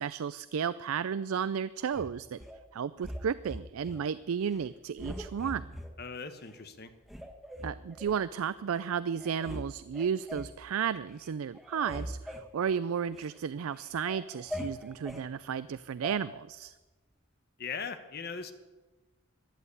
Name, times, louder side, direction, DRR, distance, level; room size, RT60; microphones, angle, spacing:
voice 1, 0.0-2.4 2.7-5.8 7.6-16.7, right 7 dB, 80° right, 16 dB, 0.4 m, -33 dB
sound 1, 1.9-2.6 3.0-4.0 4.4-4.6 5.0-5.9 6.5-6.6 7.1-8.2 8.8-8.9 9.2-9.7 9.9-10.6 11.0-11.3 11.5-13.4 13.7-15.3 16.0-16.2, equal, ahead, 1.3 m, -42 dB
voice 2, 6.0-6.9 17.6-18.5, left 5 dB, 50° left, 9 dB, 1.2 m, -39 dB
14.0 x 11.0 x 8.3 m, 1.2 s
head